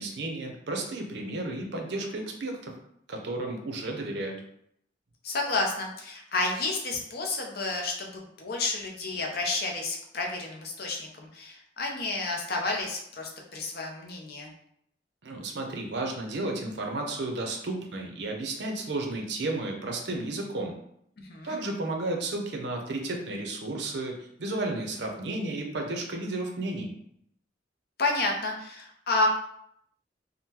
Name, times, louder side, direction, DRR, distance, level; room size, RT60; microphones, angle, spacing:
voice 1, 0.0-2.7 3.1-4.4 15.2-20.7 21.4-26.9, right 2 dB, 65° right, 2 dB, 0.6 m, -33 dB
voice 2, 5.2-14.5 21.2-21.6 28.0-29.3, left 3 dB, 55° left, 1 dB, 0.6 m, -30 dB
3.6 x 2.1 x 2.8 m, 0.73 s
head